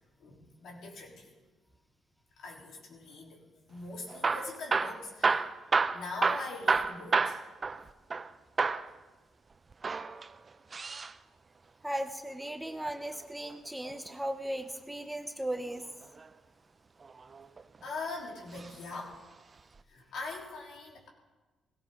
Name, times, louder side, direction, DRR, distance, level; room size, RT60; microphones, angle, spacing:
voice 1, 0.2-1.3 2.4-5.6 5.9-7.4 17.8-19.2 19.9-21.1, left 3 dB, 70° left, -2 dB, 3.9 m, -42 dB
Hammer / Drill, 4.1-8.3 8.6-8.9 9.7-11.1 12.9-14.1 15.8-16.3 17.0-17.8 18.5-18.8 19.1-19.2 19.8-19.9, right 4 dB, 35° right, 0.6 m, -30 dB
voice 2, 11.8-15.8, right 1 dB, 5° right, 6 dB, 1.0 m, -36 dB
17.5 x 17.0 x 3.9 m, 1.2 s
cardioid pair, 90°, 0 cm